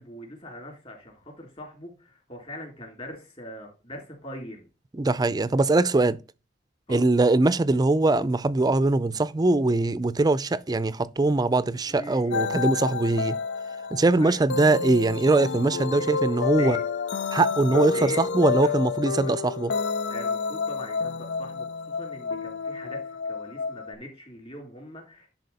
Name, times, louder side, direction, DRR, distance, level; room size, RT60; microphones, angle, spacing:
voice 1, 0.0-4.6 6.9-7.0 11.9-12.9 14.2-14.4 16.0-16.1 16.6-16.8 17.9-18.3 18.6-18.7 19.2-19.3 20.1-25.3, equal, 35° left, 3.4 m, -41 dB
voice 2, 4.9-6.2 6.9-13.3 13.9-16.8 17.3-19.7, right 2 dB, 20° right, 0.4 m, -22 dB
sound 1, 12.3-23.9, left 5 dB, 90° left, 0.5 m, -29 dB
10.5 x 4.2 x 4.1 m
head